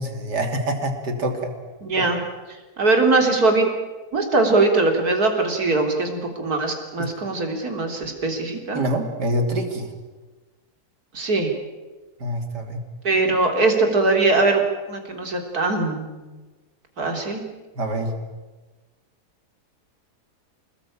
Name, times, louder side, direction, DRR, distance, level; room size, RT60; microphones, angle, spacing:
voice 1, 0.0-1.5 7.0-7.1 8.7-9.9 12.2-12.8 17.8-18.2, right 1 dB, 85° right, 5 dB, 3.6 m, -25 dB
voice 2, 1.8-2.2 2.8-3.7 4.1-8.8 11.1-11.5 13.0-14.6 14.9-16.3 17.0-17.4, right 3 dB, 65° right, 3 dB, 4.1 m, -21 dB
26.0 x 20.0 x 8.9 m, 1.2 s
omnidirectional pair, 1.7 m